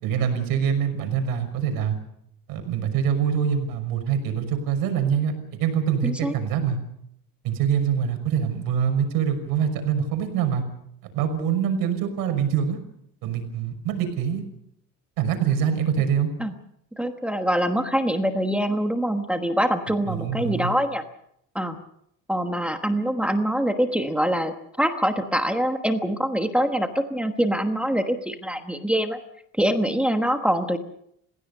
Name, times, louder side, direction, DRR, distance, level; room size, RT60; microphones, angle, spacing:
voice 1, 0.0-2.0 2.5-5.3 5.6-6.8 7.4-10.6 11.1-12.8 13.2-14.4 15.2-16.3 20.1-20.7, right 8 dB, 80° right, 7 dB, 5.9 m, -24 dB
voice 2, 6.0-6.3 16.4-16.5 17.0-21.0 21.5-21.8 22.3-29.2 29.6-30.8, equal, 5° right, 6 dB, 1.2 m, -24 dB
29.5 x 16.5 x 6.6 m, 0.73 s
cardioid pair, 180°, 34 cm